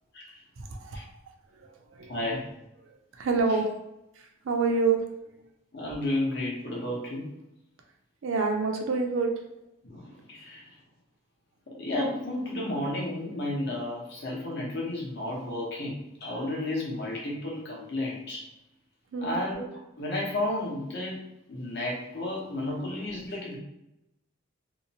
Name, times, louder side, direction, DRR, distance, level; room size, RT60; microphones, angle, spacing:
voice 1, 0.6-1.0 1.5-2.2 2.9-3.7 4.2-5.3 8.2-9.3 19.1-19.4, right 4 dB, 70° right, 3 dB, 0.4 m, -28 dB
voice 2, 2.1-2.5 5.7-7.3 9.8-10.7 11.7-18.5 19.2-19.6 20.0-21.2 21.5-23.6, left 1 dB, 55° left, -4 dB, 0.8 m, -32 dB
2.7 x 2.0 x 2.7 m, 0.89 s
head